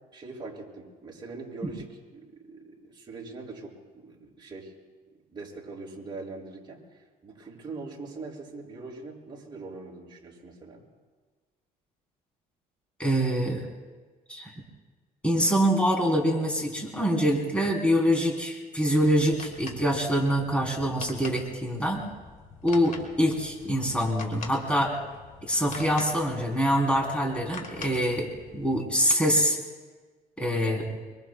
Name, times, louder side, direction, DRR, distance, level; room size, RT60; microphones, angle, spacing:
voice 1, 0.0-1.9 2.1-4.7 5.3-10.8, right 3 dB, 25° right, -4 dB, 6.1 m, -42 dB
voice 2, 13.0-13.6 14.3-14.5 15.2-22.1 22.6-24.9 25.4-28.3 28.5-29.6 30.4-31.0, equal, 5° left, 0 dB, 3.3 m, -25 dB
sound 1, 19.0-28.7, left 4 dB, 50° left, 2.9 m, -45 dB
25.5 x 25.0 x 2.3 m, 1.3 s
cardioid pair, 110°, 17 cm